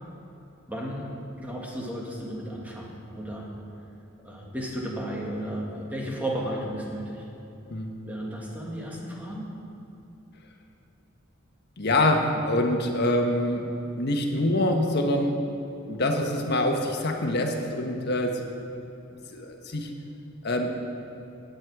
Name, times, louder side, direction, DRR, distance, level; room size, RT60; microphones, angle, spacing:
voice 1, 0.7-1.1 1.4-3.5 4.2-7.3 8.1-9.5, right 1 dB, 10° right, -2 dB, 1.9 m, -34 dB
voice 2, 11.8-13.7 13.9-15.4 15.9-18.4 19.3-19.9 20.4-20.7, left 1 dB, 55° left, 3 dB, 1.4 m, -25 dB
16.0 x 9.6 x 4.8 m, 2.9 s
head